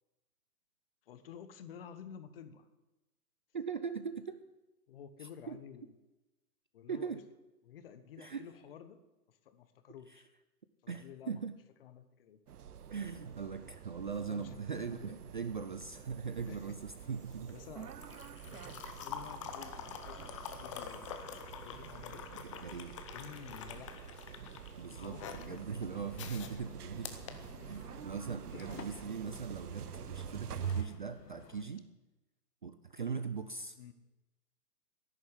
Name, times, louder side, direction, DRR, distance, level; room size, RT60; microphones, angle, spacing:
voice 1, 1.1-2.7 4.9-6.0 6.7-7.2 7.6-9.0 9.3-10.3 10.8-11.4 11.8-12.4 14.3-15.2 16.5-16.8 17.5-18.2 18.4-20.2 20.5-22.3 23.1-24.2 24.9-25.6 28.5-29.1 33.8-33.9, left 8 dB, 35° left, 11 dB, 1.2 m, -52 dB
voice 2, 3.5-4.4 5.2-5.6 6.9-7.2 8.2-8.5 10.1-10.2 10.9-11.5 12.9-17.6 22.4-23.0 24.8-27.1 27.7-31.9 32.6-33.8, right 6 dB, 35° right, 11 dB, 0.5 m, -40 dB
sound 1, 12.5-30.8, right 8 dB, 70° right, 1.1 m, -46 dB
sound 2, 15.8-28.1 29.4-29.6, left 8 dB, 20° left, 0.8 m, -47 dB
sound 3, 25.2-31.6, left 6 dB, 90° left, 1.9 m, -54 dB
11.0 x 10.5 x 9.8 m, 1.0 s
hypercardioid pair, 155°, 48 cm